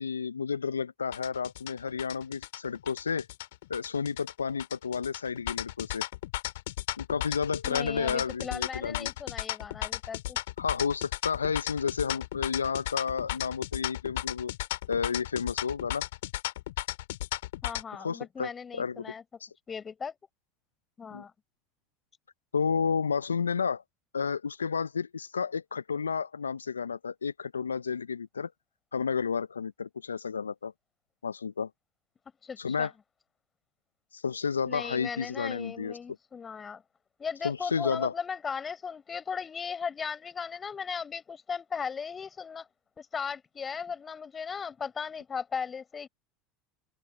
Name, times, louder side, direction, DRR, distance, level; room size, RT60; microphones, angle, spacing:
voice 1, 0.0-3.3 3.7-6.0 7.0-9.1 10.6-14.5 14.9-16.0 17.9-19.1 19.4-19.5 21.1-21.2 22.5-23.8 24.1-28.5 28.9-30.7 31.2-31.7 32.6-32.9 34.1-36.0 37.4-38.1, left 6 dB, 85° left, 0.8 m, -31 dB
sound 1, 1.1-17.8, left 17 dB, 70° left, 2.7 m, -35 dB
voice 2, 7.6-10.4 17.6-19.2 19.7-20.1 21.0-21.3 32.4-32.9 34.6-36.8 37.2-42.7 43.0-46.1, left 6 dB, 30° left, 4.9 m, -37 dB
open air
figure-of-eight pair, 75°, 0 cm